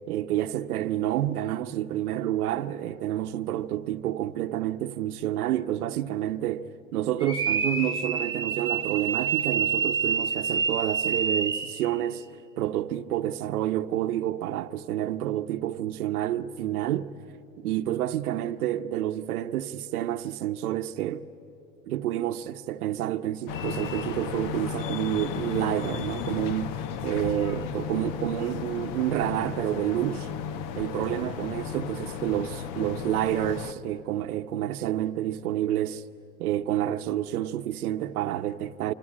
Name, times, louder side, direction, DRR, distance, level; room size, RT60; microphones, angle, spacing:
voice 1, 0.1-12.3 12.6-17.2 17.6-21.3 21.9-30.3 30.8-36.0 36.4-38.9, right 12 dB, 80° right, 0.9 m, -29 dB
sound 1, 7.2-11.9, right 6 dB, 10° right, 1.5 m, -27 dB
sound 2, 23.5-33.7, left 8 dB, 45° left, 1.1 m, -34 dB
25.5 x 25.5 x 8.8 m
hypercardioid pair, 105°, 44 cm